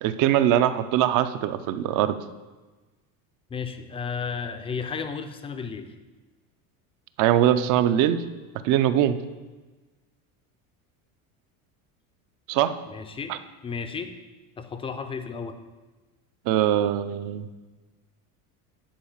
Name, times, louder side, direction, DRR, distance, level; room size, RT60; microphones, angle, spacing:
voice 1, 0.0-2.2 7.2-8.2 8.6-9.2 12.5-12.7 13.3-13.4 16.5-17.5, right 11 dB, 45° right, 12 dB, 0.6 m, -22 dB
voice 2, 3.5-5.9 12.9-14.1 14.6-15.6, left 5 dB, 15° left, 8 dB, 0.4 m, -33 dB
10.5 x 4.7 x 7.2 m, 1.2 s
supercardioid pair, 145°, 43 cm